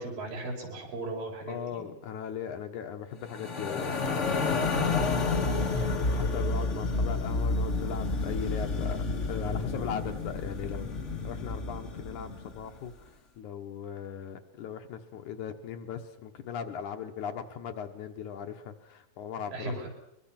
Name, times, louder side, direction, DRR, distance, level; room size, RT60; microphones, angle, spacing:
voice 1, 0.0-1.9 19.5-19.9, right 2 dB, 80° right, 0 dB, 6.6 m, -37 dB
voice 2, 1.5-9.0 9.3-10.9 11.2-19.9, left 7 dB, 70° left, 5 dB, 2.5 m, -39 dB
sound 1, 3.3-12.6, left 3 dB, 40° left, 1.0 m, -30 dB
23.0 x 22.5 x 5.9 m, 0.82 s
omnidirectional pair, 3.9 m